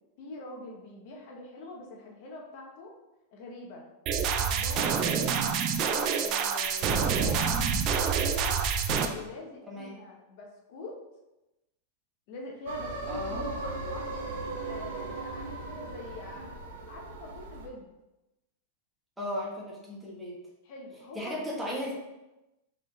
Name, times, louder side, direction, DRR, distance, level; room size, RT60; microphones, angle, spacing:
voice 1, 0.2-2.9 3.3-3.8 4.2-5.4 5.9-7.5 8.2-8.6 9.1-10.9 12.3-14.1 14.6-16.4 16.9-17.9 20.6-21.4, left 2 dB, 55° left, 0 dB, 0.9 m, -44 dB
sound 1, 4.1-9.1, right 6 dB, 40° right, 0.4 m, -27 dB
voice 2, 9.7-10.0 13.1-13.5 19.2-20.4 21.1-21.9, equal, 5° right, -5 dB, 1.1 m, -36 dB
sound 2, 12.7-17.7, right 2 dB, 75° right, 0.7 m, -37 dB
3.9 x 3.6 x 3.2 m, 0.98 s
supercardioid pair, 140°, 0 cm